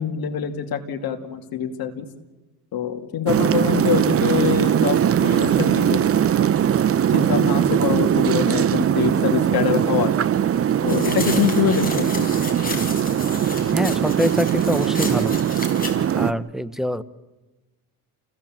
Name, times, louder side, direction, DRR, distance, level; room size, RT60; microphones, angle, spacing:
voice 1, 0.0-2.1 2.7-6.0 6.6-6.8 7.1-10.1 10.8-12.3, left 8 dB, 60° left, 5 dB, 2.5 m, -24 dB
sound 1, 3.3-16.3, right 9 dB, 35° right, 0.7 m, -20 dB
sound 2, 10.9-15.9, left 3 dB, 20° left, 4.9 m, -33 dB
voice 2, 13.7-15.4 16.1-17.0, equal, ahead, 13 dB, 0.8 m, -24 dB
28.5 x 16.5 x 7.5 m, 1.2 s
cardioid pair, 100°, 40 cm